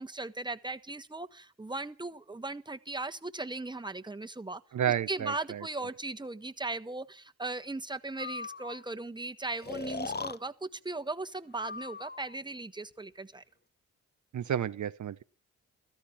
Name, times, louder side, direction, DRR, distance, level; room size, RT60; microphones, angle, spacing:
voice 1, 0.0-4.6 5.1-13.4, right 2 dB, 15° right, 1.4 m, -38 dB
voice 2, 4.7-5.7 14.3-15.2, right 9 dB, 60° right, 0.8 m, -31 dB
Breathing, 8.2-8.8 9.6-10.4 11.5-12.4, left 4 dB, 30° left, 1.0 m, -39 dB
14.5 x 13.5 x 5.8 m
supercardioid pair, 45°, 33 cm